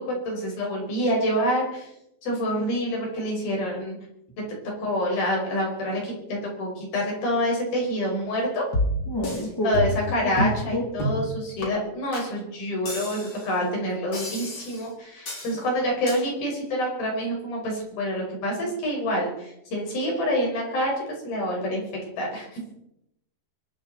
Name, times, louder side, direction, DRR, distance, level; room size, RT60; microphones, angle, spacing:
voice 1, 0.0-1.9 2.2-4.0 4.8-8.6 9.6-21.8 22.2-22.5, equal, 55° left, -1 dB, 7.1 m, -27 dB
sound 1, 8.7-9.4 9.7-10.1 10.4-10.6 11.0-11.3 11.6-11.7 12.1-12.3 12.9-13.5 14.1-14.8 15.3-15.6 16.1-16.2, equal, 30° left, 4.4 m, -29 dB
voice 2, 9.1-9.8 10.4-10.8, equal, 5° left, 0 dB, 2.3 m, -28 dB
23.5 x 12.5 x 4.3 m, 0.80 s
omnidirectional pair, 5.0 m